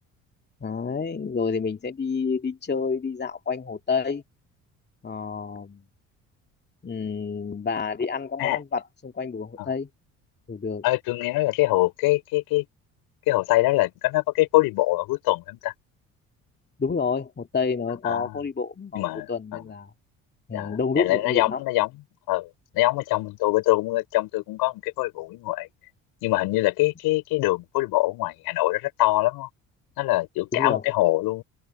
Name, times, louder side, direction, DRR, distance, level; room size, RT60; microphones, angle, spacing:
voice 1, 0.6-4.2 5.0-5.8 6.8-9.9 10.5-10.8 16.8-19.9 20.5-21.6 30.5-30.8, left 5 dB, 25° left, 2.4 m, -29 dB
voice 2, 10.8-12.6 13.3-15.7 18.0-18.4 18.9-19.7 20.5-21.9 22.3-22.5 22.7-25.7 26.2-29.5 30.0-31.4, left 19 dB, 70° left, 4.9 m, -24 dB
open air
hypercardioid pair, 60°, 37 cm